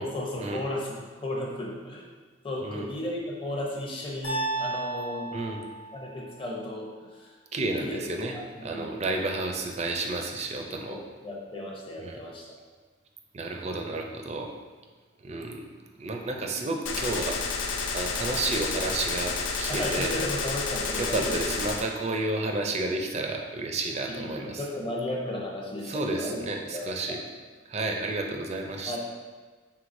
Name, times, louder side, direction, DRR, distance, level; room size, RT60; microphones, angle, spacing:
voice 1, 0.0-2.0 2.4-5.3 5.9-7.3 7.8-8.9 10.7-12.4 19.7-21.4 24.1-27.2 28.9-29.0, left 1 dB, 25° left, -2 dB, 0.7 m, -34 dB
sound 1, 4.2-6.4, right 2 dB, 65° left, 1.3 m, -33 dB
voice 2, 7.5-8.4 8.6-11.0 12.0-12.2 13.3-14.5 15.2-15.7 16.0-17.4 17.9-20.1 20.9-24.6 25.9-27.2 27.7-29.0, right 2 dB, 35° right, 2 dB, 0.4 m, -31 dB
Gunshot gunfire, 16.9-21.9, left 4 dB, 85° left, 0.4 m, -30 dB
4.7 x 3.6 x 2.6 m, 1.4 s
head